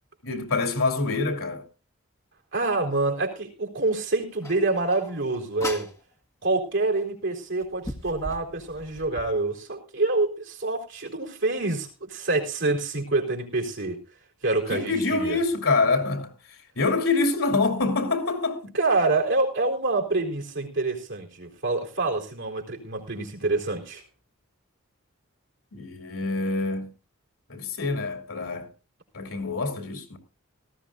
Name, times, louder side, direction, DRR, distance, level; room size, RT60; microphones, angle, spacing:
voice 1, 0.2-1.6 14.7-18.7 25.7-26.9 27.5-28.7 29.1-30.2, left 3 dB, 75° left, 3.1 m, -26 dB
voice 2, 2.5-5.9 6.4-14.0 14.4-15.4 18.7-24.0, right 2 dB, 60° right, 4.1 m, -26 dB
sound 1, 4.4-6.0 7.0-7.1 7.6-9.3, left 1 dB, 15° left, 1.4 m, -38 dB
18.5 x 15.0 x 2.5 m
head